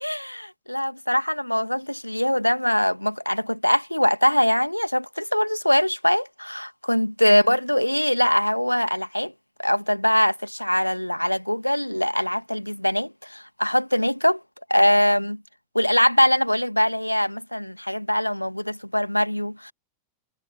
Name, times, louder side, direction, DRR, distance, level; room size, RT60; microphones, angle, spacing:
voice 1, 0.0-9.3 9.6-14.4 14.7-15.4 15.7-19.7, equal, 90° left, 1.6 m, -22 dB
figure-of-eight pair, 90°, 0 cm